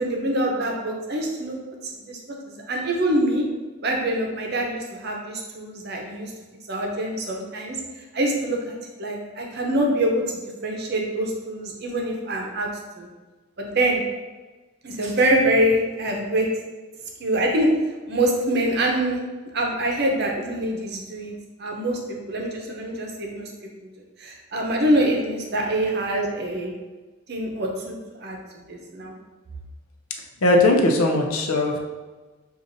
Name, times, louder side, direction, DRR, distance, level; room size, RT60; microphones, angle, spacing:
voice 1, 0.0-1.5 1.9-2.2 2.5-3.4 3.8-6.3 6.7-7.8 8.1-10.2 10.6-12.7 13.0-13.1 13.6-14.0 14.8-16.4 17.2-17.7 18.1-19.2 19.5-21.3 21.6-22.0 22.3-23.5 24.2-26.7 27.3-28.4 28.7-29.1, right 1 dB, 50° right, 0 dB, 0.7 m, -24 dB
voice 2, 30.4-31.8, left 2 dB, 90° left, 2 dB, 0.6 m, -19 dB
6.6 x 2.5 x 2.6 m, 1.3 s
head